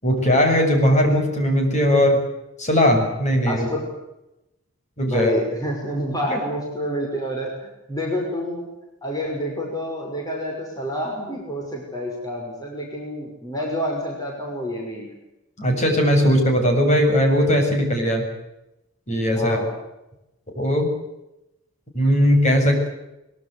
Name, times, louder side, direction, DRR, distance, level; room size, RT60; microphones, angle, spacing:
voice 1, 0.0-2.2 2.6-3.7 5.0-5.3 15.6-18.2 19.1-19.6 20.6-20.9 21.9-22.9, equal, 35° left, 3 dB, 7.4 m, -18 dB
voice 2, 3.5-3.9 5.1-8.7 9.0-15.1 19.3-19.7, equal, 20° left, -1 dB, 6.0 m, -28 dB
23.5 x 22.5 x 8.1 m, 0.91 s
head